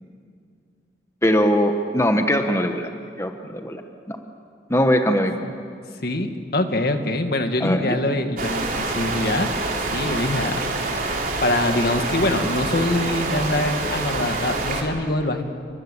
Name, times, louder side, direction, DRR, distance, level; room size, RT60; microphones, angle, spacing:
voice 1, 1.2-2.9 3.2-3.8 4.1-4.2 4.7-5.5 7.6-8.0, equal, 15° left, 5 dB, 1.2 m, -21 dB
voice 2, 6.0-9.5 9.9-15.4, left 1 dB, 60° left, 6 dB, 2.0 m, -24 dB
sound 1, 8.4-14.8, right 2 dB, 50° right, 3.9 m, -26 dB
29.0 x 24.0 x 8.4 m, 2.3 s
head